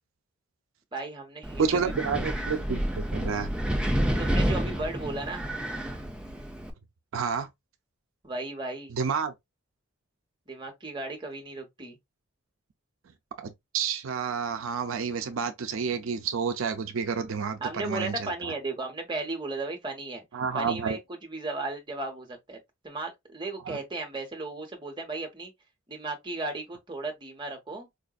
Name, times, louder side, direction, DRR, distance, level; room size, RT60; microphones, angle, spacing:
voice 1, 0.9-1.9 4.2-5.5 8.2-8.9 10.5-12.0 17.6-20.2 20.5-22.6 22.8-25.5 25.9-27.9, right 2 dB, 25° right, 1.1 m, -35 dB
Wind, 1.4-6.7, equal, 5° right, 0.6 m, -29 dB
voice 2, 1.6-3.5 7.1-7.5 8.9-9.3 13.4-18.5 20.3-21.0 23.7-23.8, right 6 dB, 75° right, 0.5 m, -30 dB
4.8 x 2.5 x 2.3 m
head